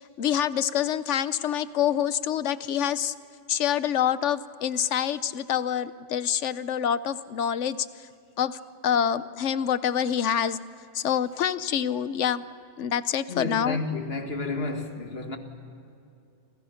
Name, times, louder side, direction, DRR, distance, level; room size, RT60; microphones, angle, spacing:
voice 1, 0.2-3.1 3.5-7.9 8.4-8.6 8.8-10.6 10.9-12.4 12.8-13.8, left 9 dB, 85° left, 1.1 m, -26 dB
voice 2, 13.3-15.4, left 3 dB, 60° left, 2.1 m, -31 dB
29.0 x 27.5 x 5.8 m
omnidirectional pair, 1.2 m